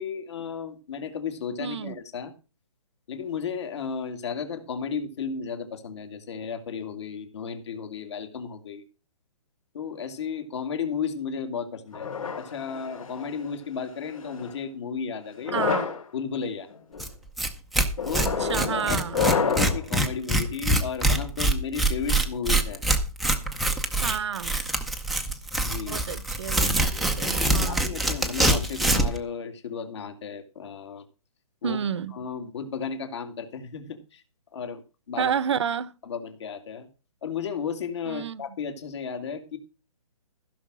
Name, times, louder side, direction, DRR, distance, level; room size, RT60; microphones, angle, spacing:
voice 1, 0.0-2.3 3.1-8.8 9.7-15.6 16.1-16.7 18.0-18.3 18.7-19.0 19.4-22.8 25.6-26.0 27.6-31.0 31.6-31.8 32.1-34.2 34.5-34.8 35.1-35.3 36.1-36.9 37.2-39.6, left 6 dB, 50° left, 2.6 m, -34 dB
voice 2, 1.6-2.0 15.5-15.9 18.2-19.3 24.0-24.5 25.9-27.9 31.6-32.1 35.2-35.9 38.1-38.4, right 8 dB, 50° right, 0.8 m, -30 dB
sound 1, 11.9-13.4 14.1-14.5 15.3-16.0 16.7-17.0 18.0-19.8, left 5 dB, 65° left, 3.2 m, -29 dB
Tearing, 17.0-17.1 17.4-17.5 17.7-29.2, right 1 dB, ahead, 0.6 m, -24 dB
15.5 x 6.4 x 6.2 m
hypercardioid pair, 165°, 19 cm